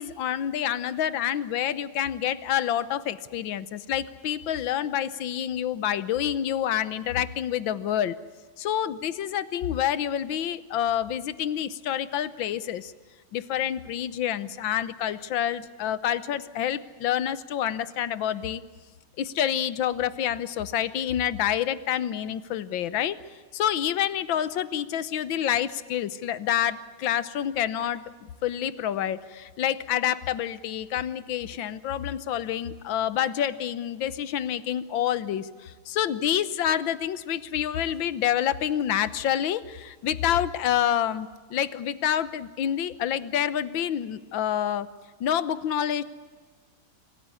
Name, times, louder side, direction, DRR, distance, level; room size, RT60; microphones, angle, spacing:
voice 1, 0.0-8.2 8.6-12.9 13.3-18.6 19.2-23.2 23.5-44.9 45.2-46.0, left 10 dB, 90° left, 15 dB, 1.7 m, -28 dB
25.0 x 15.0 x 9.7 m, 1.4 s
omnidirectional pair, 2.1 m